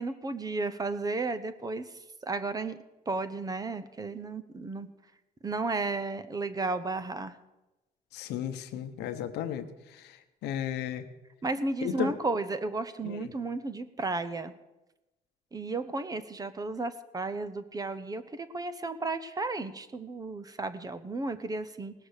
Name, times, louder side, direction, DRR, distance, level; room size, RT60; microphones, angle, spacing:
voice 1, 0.0-1.9 2.2-2.8 3.1-4.9 5.4-7.4 11.4-14.5 15.5-21.9, right 3 dB, 20° right, 13 dB, 0.8 m, -33 dB
voice 2, 8.1-11.0 11.8-12.1 13.0-13.3, left 10 dB, 80° left, 8 dB, 1.0 m, -35 dB
18.0 x 6.8 x 6.5 m, 1.0 s
cardioid pair, 110°, 17 cm